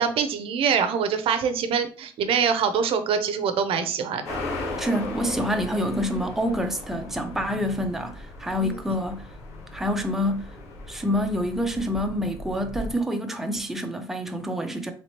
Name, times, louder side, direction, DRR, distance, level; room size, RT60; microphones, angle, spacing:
voice 1, 0.0-4.4 8.6-8.8, right 6 dB, 60° right, 0.5 m, -24 dB
sound 1, 4.2-12.9, left 2 dB, 80° left, 1.1 m, -37 dB
voice 2, 4.8-9.3 9.7-10.5 10.9-14.9, equal, 5° right, 0.5 m, -27 dB
3.1 x 2.9 x 2.9 m
cardioid pair, 100°, 11 cm